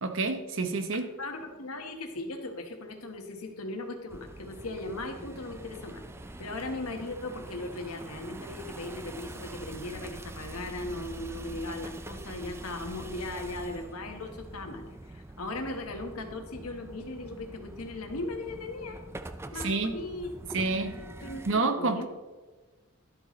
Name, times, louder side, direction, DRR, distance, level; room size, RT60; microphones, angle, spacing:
voice 1, 0.0-1.1 19.5-19.9 20.5-21.0 21.5-22.1, right 3 dB, 60° right, 7 dB, 0.9 m, -28 dB
voice 2, 0.9-6.0 6.4-19.0 19.5-20.3 20.8-22.1, left 2 dB, 85° left, 4 dB, 1.3 m, -38 dB
sound 1, 4.1-21.5, right 2 dB, 10° right, 0.3 m, -44 dB
12.0 x 8.0 x 3.1 m, 1.2 s
head